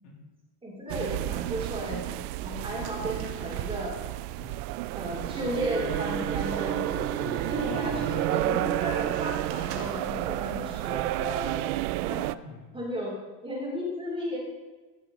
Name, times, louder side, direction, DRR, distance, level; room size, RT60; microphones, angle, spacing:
voice 1, 0.6-2.0 2.4-3.9 4.9-7.0 7.4-11.7 12.0-12.3 12.7-13.1 13.4-14.4, equal, 10° right, -3 dB, 3.4 m, -34 dB
sound 1, 0.9-12.3, right 17 dB, 85° right, 0.5 m, -31 dB
sound 2, 2.7-10.2 10.7-11.1 11.5-11.7, right 5 dB, 55° right, 1.6 m, -48 dB
voice 2, 4.3-4.7 5.1-5.2 7.1-8.1 12.3-12.8, left 4 dB, 65° left, -1 dB, 3.0 m, -44 dB
Bowed string instrument, 5.7-9.7, right 6 dB, 30° right, 0.9 m, -37 dB
15.0 x 7.0 x 4.0 m, 1.2 s
supercardioid pair, 130°, 44 cm